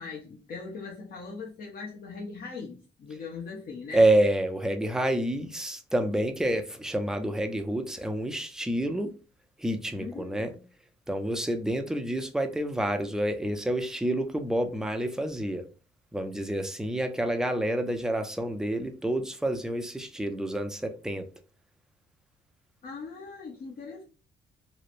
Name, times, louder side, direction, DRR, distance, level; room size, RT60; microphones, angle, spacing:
voice 1, 0.0-4.1 10.0-10.6 22.8-24.0, left 4 dB, 45° left, 0.6 m, -40 dB
voice 2, 3.9-9.1 9.6-10.5 11.1-15.7 16.1-21.3, right 1 dB, 5° right, 0.4 m, -28 dB
3.0 x 2.0 x 2.5 m
cardioid pair, 90°, 20 cm